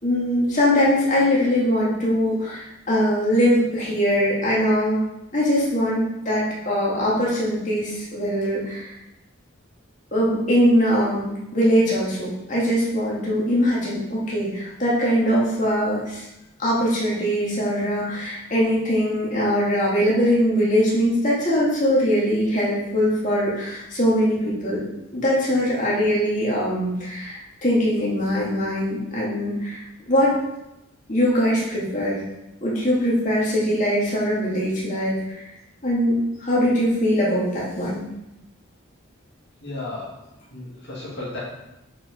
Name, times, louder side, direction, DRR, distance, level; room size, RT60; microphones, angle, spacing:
voice 1, 0.0-5.0 5.3-8.9 10.1-16.2 16.6-24.8 25.1-30.3 31.1-32.2 32.6-35.4 35.8-36.2 36.4-38.0, equal, 35° left, -6 dB, 2.2 m, -22 dB
voice 2, 39.6-40.1 40.5-41.4, left 2 dB, 50° left, -7 dB, 2.0 m, -33 dB
7.3 x 4.9 x 5.3 m, 0.91 s
head